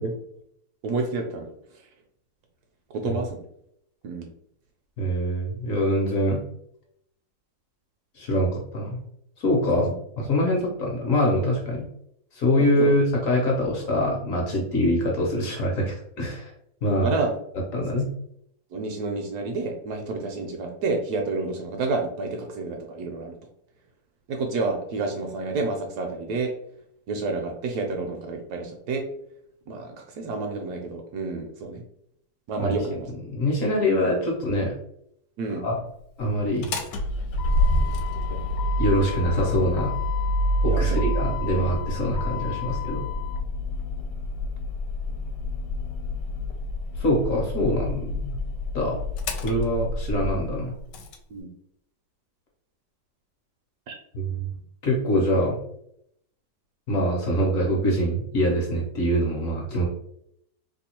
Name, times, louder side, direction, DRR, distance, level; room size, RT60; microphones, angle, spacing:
voice 1, 0.8-1.5 2.9-3.4 4.0-4.3 9.7-9.9 12.7-12.9 17.0-17.4 17.7-18.0 18.7-23.4 24.3-26.5 27.1-29.0 29.7-31.8 32.5-33.1 35.4-35.6 38.3-38.4 40.7-41.1 51.3-51.5 53.9-54.0, right 3 dB, 70° right, 3 dB, 1.0 m, -29 dB
voice 2, 5.0-6.4 8.2-9.0 9.4-9.9 10.2-11.9 12.4-16.4 16.8-17.1 17.7-18.1 32.6-32.7 33.3-34.7 35.5-35.8 36.2-36.7 38.8-39.9 40.6-43.1 47.0-48.3 48.7-49.0 49.4-50.8 54.1-54.4 54.8-55.6 56.9-59.8, equal, 55° left, -1 dB, 1.1 m, -24 dB
Motor vehicle (road), 36.5-51.2, left 1 dB, 80° left, 1.2 m, -27 dB
3.0 x 2.3 x 4.2 m, 0.72 s
omnidirectional pair, 1.9 m